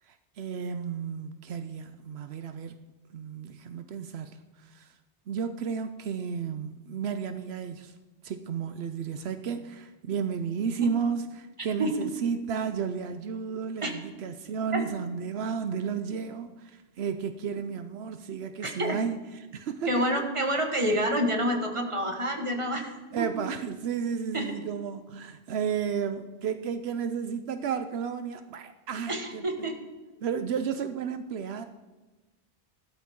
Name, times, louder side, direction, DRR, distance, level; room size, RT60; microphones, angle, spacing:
voice 1, 0.4-2.8 3.1-4.9 5.3-7.9 8.2-19.2 19.5-20.1 23.1-29.7 30.2-31.6, right 6 dB, 80° right, 9 dB, 0.9 m, -33 dB
voice 2, 18.6-19.0 19.9-22.9 23.2-23.3 24.3-24.5 29.1-29.8, equal, 30° right, 3 dB, 1.6 m, -28 dB
16.0 x 12.5 x 3.7 m, 1.2 s
omnidirectional pair, 1.1 m